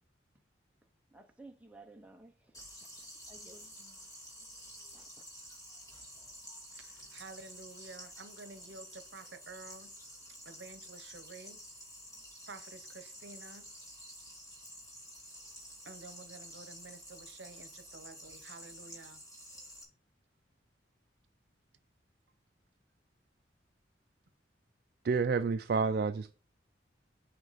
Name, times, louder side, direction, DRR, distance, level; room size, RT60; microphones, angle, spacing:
voice 1, 1.1-2.6 3.0-4.1 4.9-5.1 5.5-5.6, right 2 dB, 5° right, 0.7 m, -56 dB
sound 1, 2.5-19.8, equal, 20° left, 2.4 m, -50 dB
voice 2, 6.7-9.9 10.4-11.6 12.5-13.7 15.8-19.2, right 3 dB, 70° right, 0.9 m, -51 dB
voice 3, 25.0-26.3, right 4 dB, 55° right, 0.4 m, -29 dB
7.8 x 5.0 x 4.1 m
head